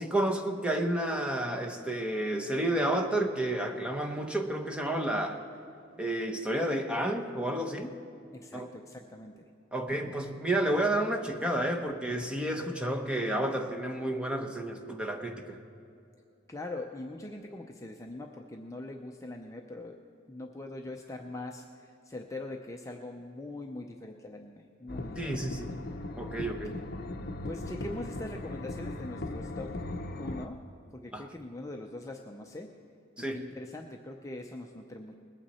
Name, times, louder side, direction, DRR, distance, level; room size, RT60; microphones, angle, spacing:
voice 1, 0.0-5.4 6.0-8.0 8.5-8.7 9.7-15.6 25.2-25.7 26.2-26.8 31.1-31.3 33.2-33.4, right 1 dB, 5° right, 3 dB, 0.9 m, -31 dB
voice 2, 8.3-9.3 16.5-20.0 20.3-25.5 26.7-26.9 27.5-29.7 30.2-30.6 30.9-32.7 33.3-35.2, left 2 dB, 15° left, 2 dB, 0.6 m, -42 dB
sound 1, 24.9-30.5, left 2 dB, 50° left, 0.7 m, -38 dB
21.0 x 9.0 x 4.2 m, 2.7 s
head